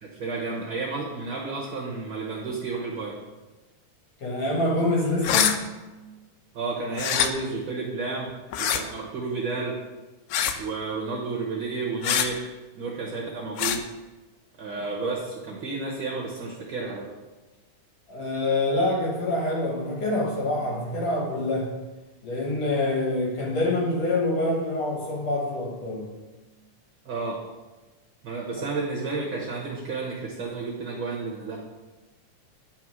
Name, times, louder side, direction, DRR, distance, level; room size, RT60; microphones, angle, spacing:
voice 1, 0.0-3.2 6.5-8.3 8.6-9.8 10.6-12.5 12.7-13.8 14.6-17.1 27.0-27.4 28.2-31.6, right 3 dB, 65° right, -3 dB, 1.2 m, -31 dB
voice 2, 4.2-5.7 18.1-21.7 22.2-26.1, left 2 dB, 60° left, -1 dB, 2.1 m, -26 dB
sound 1, 5.2-5.5 6.9-7.3 8.5-8.8 10.3-10.6 12.0-12.3 13.6-13.8, left 9 dB, 80° left, 2.0 m, -23 dB
9.3 x 4.5 x 6.1 m, 1.2 s
omnidirectional pair, 3.7 m